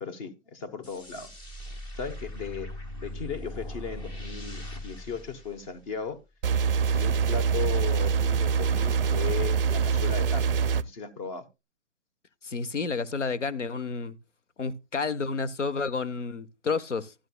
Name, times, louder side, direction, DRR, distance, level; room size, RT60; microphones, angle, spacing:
voice 1, 0.0-1.3 1.9-2.7 3.0-6.2 6.9-11.4, left 5 dB, 30° left, 1.0 m, -36 dB
sound 1, 0.8-6.2, equal, 10° left, 0.6 m, -40 dB
sound 2, 6.4-10.8, right 6 dB, 50° right, 0.5 m, -24 dB
voice 2, 12.4-14.2 14.6-17.1, left 4 dB, 80° left, 0.9 m, -30 dB
13.0 x 10.5 x 2.2 m
figure-of-eight pair, 125°, 36 cm